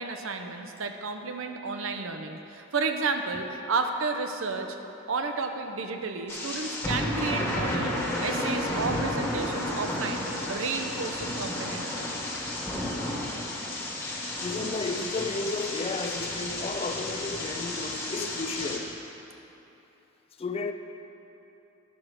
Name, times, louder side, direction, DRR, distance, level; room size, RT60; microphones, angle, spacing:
voice 1, 0.0-4.8 5.1-7.9 8.2-12.1, right 4 dB, 75° right, 0.7 m, -32 dB
sound 1, 6.3-18.8, left 1 dB, 15° left, 1.2 m, -32 dB
voice 2, 14.4-19.0 20.4-20.7, left 3 dB, 30° left, 0.4 m, -33 dB
11.0 x 6.0 x 5.0 m
head